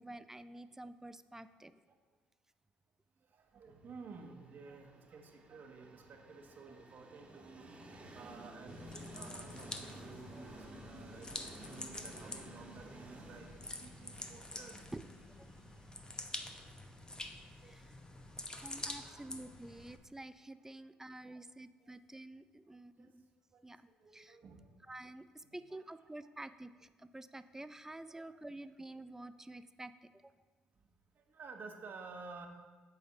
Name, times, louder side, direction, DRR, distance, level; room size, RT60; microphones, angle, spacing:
voice 1, 0.0-1.7 14.9-15.0 15.3-15.5 17.6-17.9 18.6-23.3 23.6-23.9 24.1-24.4 24.9-30.3, right 1 dB, 10° right, 13 dB, 0.4 m, -49 dB
voice 2, 3.2-14.9 16.4-16.8 17.1-17.3 17.6-17.7 18.2-19.4 20.6-20.8 21.2-21.5 21.8-22.0 22.7-23.1 23.5-24.8 25.4-25.8 26.2-26.3 28.1-28.5 29.3-29.4 30.7-30.9 31.1-32.5, right 4 dB, 50° right, 4 dB, 1.2 m, -54 dB
Train, 4.0-19.9, right 1 dB, 30° right, 1.6 m, -55 dB
sound 1, 8.7-20.0, left 2 dB, 20° left, 0.9 m, -47 dB
8.3 x 4.1 x 6.6 m, 1.4 s
hypercardioid pair, 55°, 4 cm